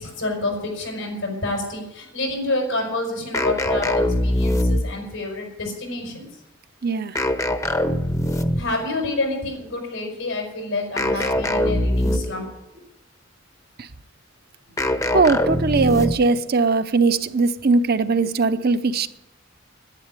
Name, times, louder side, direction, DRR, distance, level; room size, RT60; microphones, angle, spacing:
voice 1, 0.0-6.3 8.6-12.4, left 2 dB, 90° left, 5.3 m, -28 dB
sound 1, 3.3-5.1 7.2-8.8 11.0-12.5 14.8-16.4, left 1 dB, 15° left, 0.8 m, -22 dB
voice 2, 6.8-7.1 15.1-19.1, right 4 dB, 50° right, 0.7 m, -19 dB
10.5 x 10.0 x 9.7 m
head